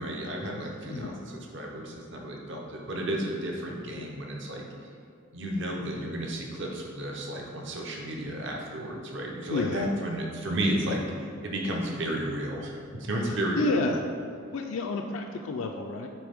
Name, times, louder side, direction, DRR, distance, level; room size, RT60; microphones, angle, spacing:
voice 1, 0.0-4.6 5.3-11.0 11.4-13.8, right 1 dB, 65° right, -1 dB, 0.9 m, -32 dB
voice 2, 9.5-9.9 13.3-14.0 14.5-16.1, left 3 dB, 80° left, 2 dB, 0.4 m, -30 dB
8.4 x 3.3 x 3.6 m, 2.3 s
head